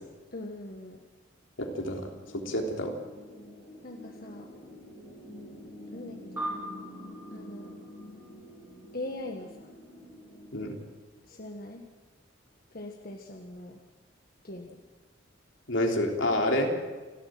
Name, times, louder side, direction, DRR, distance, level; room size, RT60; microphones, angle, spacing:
voice 1, 0.3-1.0 3.8-4.5 5.9-6.5 7.3-7.7 8.9-9.7 11.3-11.8 12.7-13.8 14.4-14.8, left 1 dB, 50° left, 2 dB, 1.6 m, -41 dB
voice 2, 1.6-2.1 2.3-2.9 10.5-10.8 15.7-16.7, left 1 dB, 75° left, 2 dB, 3.4 m, -28 dB
sound 1, 2.2-10.9, equal, 25° left, 6.2 m, -47 dB
sound 2, 6.4-9.1, right 1 dB, 10° right, 3.3 m, -41 dB
29.0 x 12.5 x 7.7 m, 1.3 s
head